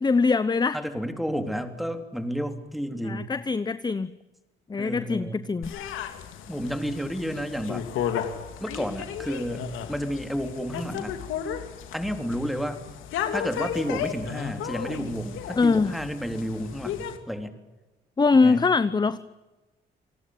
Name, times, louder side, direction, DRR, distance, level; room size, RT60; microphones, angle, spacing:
voice 1, 0.0-0.8 3.0-4.1 4.7-5.7 15.6-15.9 18.2-19.2, left 4 dB, 20° left, 14 dB, 0.9 m, -22 dB
voice 2, 0.7-3.3 4.8-5.4 6.5-7.9 8.6-11.2 11.9-12.8 13.3-17.5 18.3-18.7, equal, ahead, 7 dB, 3.5 m, -31 dB
sound 1, 5.6-17.2, left 9 dB, 90° left, 2.9 m, -34 dB
29.0 x 19.0 x 9.5 m, 1.1 s
cardioid pair, 90°, 20 cm